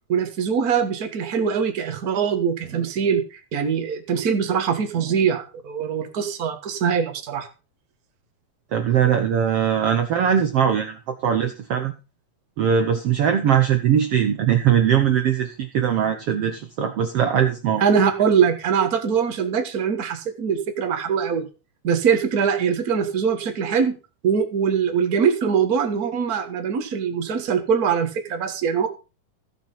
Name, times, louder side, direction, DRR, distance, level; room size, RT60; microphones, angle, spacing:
voice 1, 0.1-7.5 17.8-21.5 21.8-24.0 24.2-28.9, right 7 dB, 55° right, 6 dB, 1.0 m, -22 dB
voice 2, 8.7-11.0 11.2-11.9 12.6-17.8, right 9 dB, 80° right, 7 dB, 1.3 m, -20 dB
15.0 x 6.1 x 5.5 m, 0.33 s
omnidirectional pair, 4.0 m